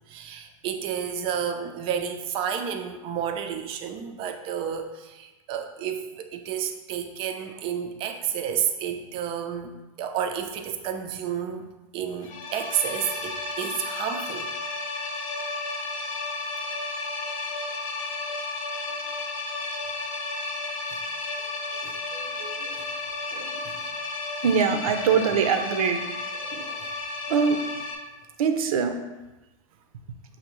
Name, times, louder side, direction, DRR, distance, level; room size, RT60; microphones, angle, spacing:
voice 1, 0.1-9.7 10.0-14.5 19.9-20.0 20.9-21.0 21.8-22.0 26.4-26.9, right 8 dB, 30° right, 6 dB, 0.4 m, -31 dB
sound 1, 12.2-28.0, left 3 dB, 70° left, 0.8 m, -33 dB
voice 2, 22.1-22.8 23.3-23.7 24.4-26.0 26.5-26.6 27.3-27.6 28.4-28.9, right 6 dB, 80° right, 7 dB, 0.6 m, -24 dB
6.5 x 2.6 x 3.0 m, 1.1 s
supercardioid pair, 145°, 18 cm